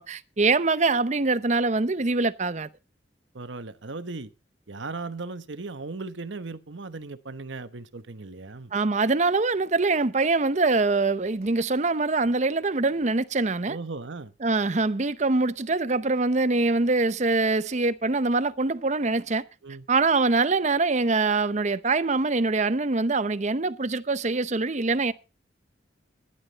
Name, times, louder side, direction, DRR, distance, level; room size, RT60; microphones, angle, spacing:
voice 1, 0.0-2.7 8.7-13.8 14.4-19.4 19.9-25.1, right 3 dB, 40° right, 0.7 m, -24 dB
voice 2, 3.3-4.3 4.7-8.7 13.7-14.3 19.6-19.9, right 3 dB, 85° right, 1.1 m, -37 dB
14.5 x 11.5 x 4.1 m
head